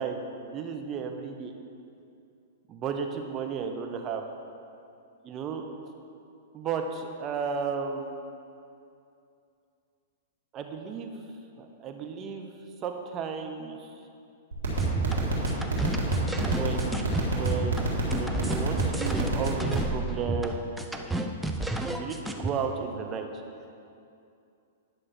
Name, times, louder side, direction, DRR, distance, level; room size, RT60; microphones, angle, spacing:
voice 1, 0.0-1.5 2.7-4.2 5.2-5.9 6.5-8.1 10.5-11.1 11.6-12.5 12.8-13.9 16.4-20.7 21.9-23.3, right 5 dB, 30° right, 4 dB, 0.9 m, -34 dB
sound 1, 14.5-19.9, right 2 dB, 80° right, 2.1 m, -27 dB
sound 2, 14.7-22.5, right 2 dB, 5° right, 0.6 m, -30 dB
9.9 x 6.3 x 4.4 m, 2.6 s
hypercardioid pair, 115°, 0 cm